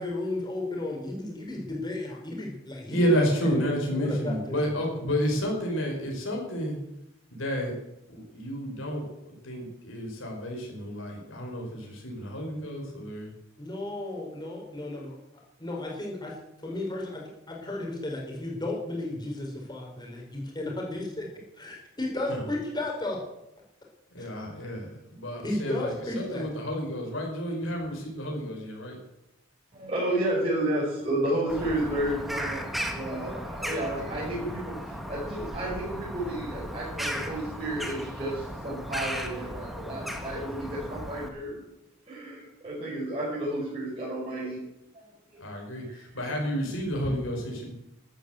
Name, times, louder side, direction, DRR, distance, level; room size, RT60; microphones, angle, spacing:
voice 1, 0.0-3.0 3.4-4.8 13.6-15.2 15.6-16.3 16.6-21.3 21.6-23.2 24.2-24.3 25.4-26.5 27.6-28.1, left 2 dB, 20° left, -1 dB, 4.7 m, -34 dB
voice 2, 2.9-6.8 7.3-7.8 8.1-13.3 22.3-22.4 24.1-29.0 45.4-47.7, equal, 65° left, 0 dB, 5.1 m, -30 dB
voice 3, 29.7-32.6 32.9-41.6 42.1-44.6 44.9-45.0 45.9-46.5, right 1 dB, 30° right, -8 dB, 5.9 m, -31 dB
Bird vocalization bird call bird song, 31.5-41.3, equal, ahead, 1.7 m, -36 dB
13.0 x 12.5 x 7.9 m, 0.86 s
head